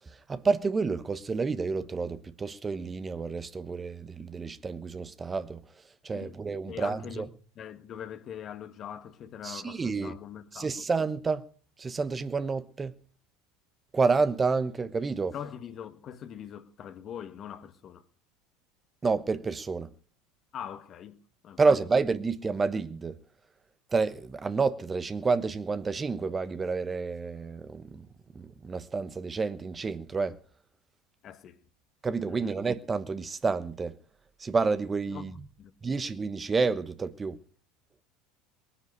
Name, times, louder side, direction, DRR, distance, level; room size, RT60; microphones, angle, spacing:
voice 1, 0.1-5.6 6.0-7.2 9.4-10.2 10.5-11.4 11.8-12.9 13.9-15.3 19.0-19.9 21.6-23.2 23.9-28.1 28.3-30.4 32.0-34.0 34.4-35.4 35.8-37.4, right 4 dB, 25° right, 1.0 m, -29 dB
voice 2, 6.7-7.3 7.6-10.7 15.3-18.0 20.5-21.2 21.4-21.7 31.2-31.6 32.3-32.6 35.1-35.9, left 9 dB, 40° left, 1.5 m, -42 dB
20.0 x 9.9 x 6.8 m
hypercardioid pair, 75°, 0 cm